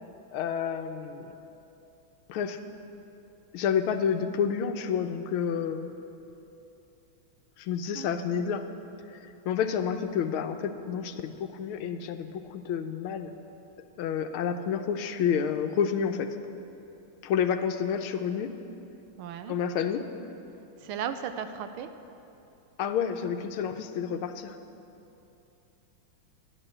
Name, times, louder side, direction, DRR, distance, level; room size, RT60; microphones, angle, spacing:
voice 1, 0.3-1.3 2.3-2.6 3.5-5.9 7.6-8.7 9.1-13.3 14.0-16.4 17.2-18.5 19.5-20.1 22.8-24.6, left 7 dB, 85° left, 8 dB, 1.6 m, -29 dB
voice 2, 19.2-19.6 20.8-21.9, right 8 dB, 85° right, 9 dB, 1.6 m, -35 dB
11.5 x 10.5 x 7.7 m, 2.9 s
omnidirectional pair, 2.3 m